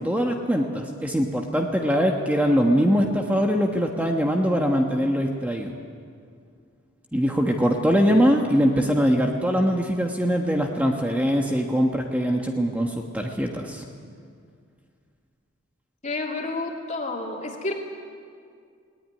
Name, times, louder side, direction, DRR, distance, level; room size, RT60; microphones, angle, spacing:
voice 1, 0.0-5.7 7.1-13.8, equal, 10° right, 2 dB, 1.3 m, -22 dB
voice 2, 16.0-17.7, left 2 dB, 35° left, 1 dB, 2.8 m, -30 dB
19.5 x 18.5 x 9.7 m, 2.2 s
head